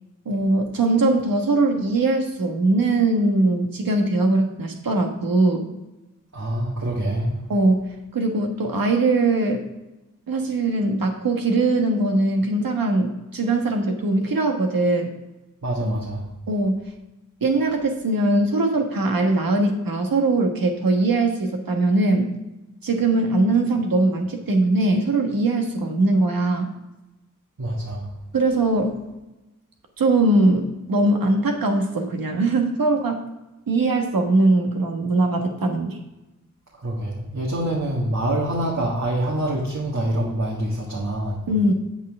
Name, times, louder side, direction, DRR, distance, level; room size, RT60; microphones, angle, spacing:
voice 1, 0.2-5.7 7.5-7.9 8.1-9.6 10.3-15.1 15.8-15.9 16.5-16.8 17.4-22.3 22.8-26.7 28.3-29.0 30.0-33.2 33.7-36.0 41.5-41.7, right 2 dB, 85° right, 3 dB, 1.4 m, -21 dB
voice 2, 6.3-7.4 15.6-16.3 27.6-28.1 36.7-41.4, right 1 dB, 55° right, -4 dB, 1.6 m, -25 dB
8.3 x 7.4 x 3.5 m, 1.0 s
wide cardioid pair, 105°, 34 cm